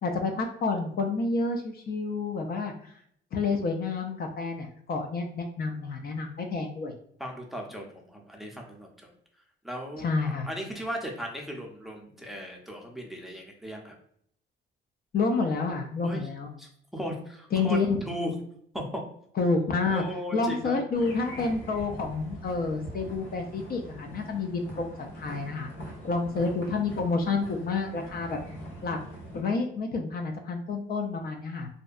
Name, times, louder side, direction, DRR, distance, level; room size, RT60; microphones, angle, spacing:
voice 1, 0.0-2.9 3.3-6.9 10.0-10.5 15.1-16.5 17.5-18.0 19.4-20.0 20.3-25.7 26.1-28.4 28.8-29.0 29.3-31.7, left 4 dB, 50° left, 3 dB, 0.4 m, -29 dB
voice 2, 7.2-9.1 9.6-13.9 16.0-16.3 16.6-18.4 18.7-19.0 19.8-20.8, equal, ahead, 0 dB, 0.5 m, -37 dB
sound 1, 20.9-29.4, equal, 75° left, 0.9 m, -43 dB
2.6 x 2.1 x 2.3 m, 0.67 s
cardioid pair, 90°, 20 cm